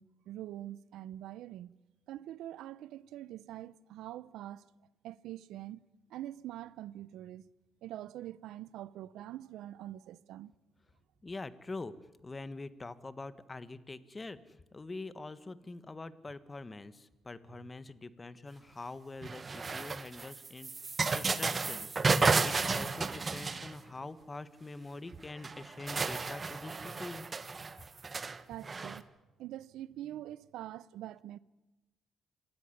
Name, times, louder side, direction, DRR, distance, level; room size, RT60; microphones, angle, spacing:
voice 1, 0.0-1.7 2.1-4.6 5.0-5.8 6.1-7.5 7.8-10.5 28.5-29.1 29.4-31.4, right 13 dB, 85° right, 0.7 m, -44 dB
voice 2, 11.2-11.9 12.2-27.3, left 3 dB, 25° left, 1.3 m, -45 dB
sound 1, 19.2-24.0 25.1-25.2 25.4-29.0, right 4 dB, 35° right, 1.3 m, -32 dB
27.0 x 13.0 x 9.8 m
cardioid pair, 90°, 0 cm